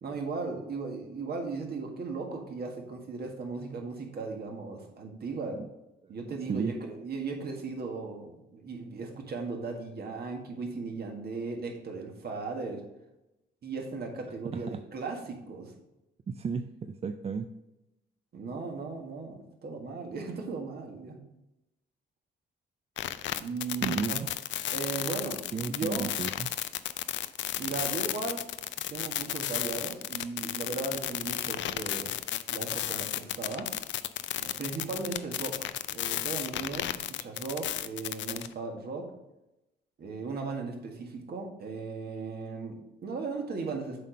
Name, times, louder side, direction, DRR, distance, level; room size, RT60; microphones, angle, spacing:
voice 1, 0.0-5.6 6.1-12.8 13.6-15.7 18.3-21.2 23.4-24.2 24.7-26.1 27.6-28.4 28.9-32.2 32.5-33.7 34.4-39.1 40.0-44.0, right 4 dB, 55° right, 2 dB, 1.7 m, -37 dB
voice 2, 16.3-17.5 23.8-24.4 25.5-26.5, right 5 dB, 30° right, 8 dB, 0.4 m, -33 dB
sound 1, 23.0-38.5, left 12 dB, 70° left, 0.4 m, -33 dB
7.5 x 4.2 x 5.1 m, 0.92 s
cardioid pair, 90°, 20 cm